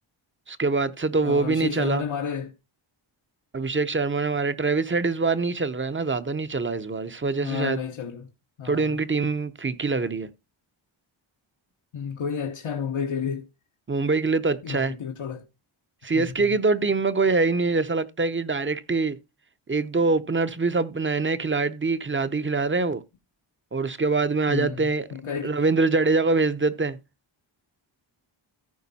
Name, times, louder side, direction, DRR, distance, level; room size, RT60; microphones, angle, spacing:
voice 1, 0.5-2.0 3.5-7.8 8.6-10.3 13.9-14.9 16.0-19.2 19.7-23.0 23.7-25.1 25.4-27.0, right 3 dB, 25° right, 0.7 m, -24 dB
voice 2, 1.2-2.5 7.4-8.3 8.6-9.0 11.9-13.5 14.6-15.4 16.1-16.5 24.5-25.5, left 7 dB, 85° left, 1.1 m, -31 dB
14.5 x 4.9 x 4.1 m
wide cardioid pair, 120°, 49 cm